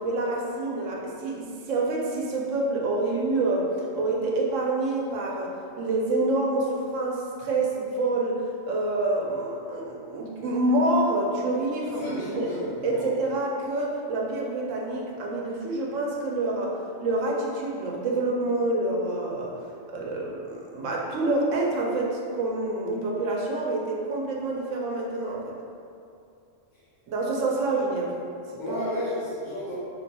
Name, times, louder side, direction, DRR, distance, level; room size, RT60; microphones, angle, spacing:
voice 1, 0.0-12.5 12.8-19.5 19.9-25.6 27.1-28.2 28.7-28.8, right 2 dB, 75° right, -2 dB, 0.9 m, -27 dB
voice 2, 11.8-13.1 28.6-29.7, left 1 dB, 50° left, -12 dB, 0.8 m, -33 dB
4.0 x 2.6 x 2.2 m, 2.5 s
omnidirectional pair, 1.4 m